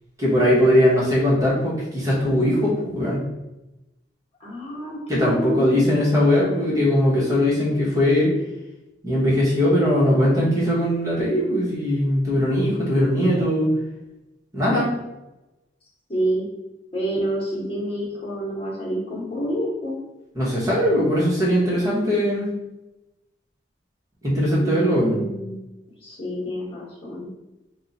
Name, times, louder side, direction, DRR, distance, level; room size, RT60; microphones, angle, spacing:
voice 1, 0.2-3.2 5.1-8.3 9.0-13.7 14.5-14.9 20.3-22.5 24.2-25.2, equal, 20° right, -6 dB, 1.2 m, -20 dB
voice 2, 4.4-5.9 16.1-16.5 16.9-20.0 24.4-25.6 26.0-27.3, right 1 dB, 30° left, -6 dB, 1.3 m, -28 dB
3.6 x 2.4 x 4.1 m, 0.97 s
head